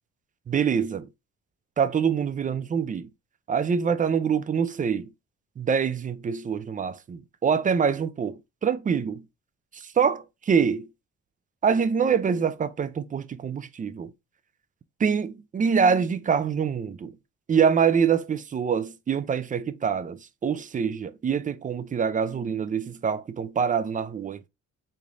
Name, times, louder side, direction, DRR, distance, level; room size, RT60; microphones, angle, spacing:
voice 1, 0.5-1.1 1.8-3.1 3.5-5.1 5.6-9.2 10.0-10.8 11.6-14.1 15.0-17.1 17.5-24.5, right 6 dB, 25° right, 0.4 m, -25 dB
3.5 x 3.3 x 2.5 m
cardioid pair, 90°, 30 cm